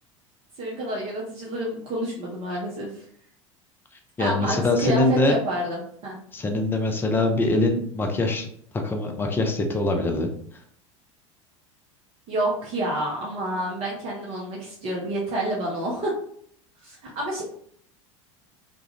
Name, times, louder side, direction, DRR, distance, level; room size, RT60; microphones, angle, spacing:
voice 1, 0.6-3.0 4.2-6.1 12.3-16.2 16.8-17.4, right 1 dB, 35° right, -3 dB, 0.6 m, -29 dB
voice 2, 4.2-5.4 6.3-8.5 8.8-10.3, left 2 dB, 15° left, 3 dB, 0.4 m, -23 dB
2.3 x 2.1 x 2.7 m, 0.65 s
figure-of-eight pair, 75°, 16 cm